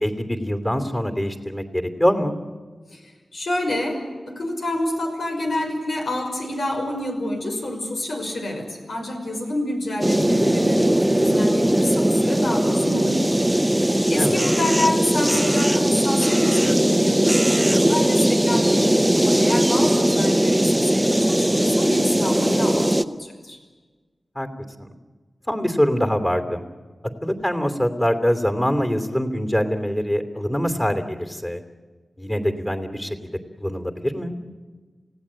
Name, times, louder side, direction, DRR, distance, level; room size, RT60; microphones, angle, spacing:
voice 1, 0.0-2.4 14.2-14.4 19.7-19.9 24.3-24.5 24.8-24.9 25.5-26.6 27.2-31.6 32.2-33.3 33.6-34.4, equal, 20° left, 6 dB, 3.0 m, -24 dB
voice 2, 2.9-23.6, left 1 dB, 90° left, 2 dB, 5.8 m, -28 dB
sound 1, 10.0-23.0, right 1 dB, 10° right, 0.8 m, -19 dB
29.0 x 17.0 x 8.9 m, 1.4 s
wide cardioid pair, 85°, 0 cm